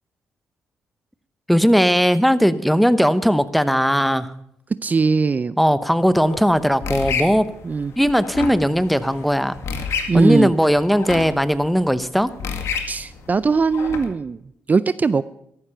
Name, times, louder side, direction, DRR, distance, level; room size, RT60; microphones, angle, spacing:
voice 1, 1.5-4.3 5.6-7.5 8.0-9.6 10.1-12.3, equal, ahead, 14 dB, 0.9 m, -18 dB
voice 2, 4.8-5.6 7.6-7.9 10.1-10.5 12.9-14.4 14.7-15.2, right 4 dB, 35° right, 16 dB, 0.4 m, -20 dB
sound 1, 6.0-14.1, left 5 dB, 75° left, 2.0 m, -31 dB
14.0 x 12.0 x 5.7 m, 0.77 s
cardioid pair, 70°, 5 cm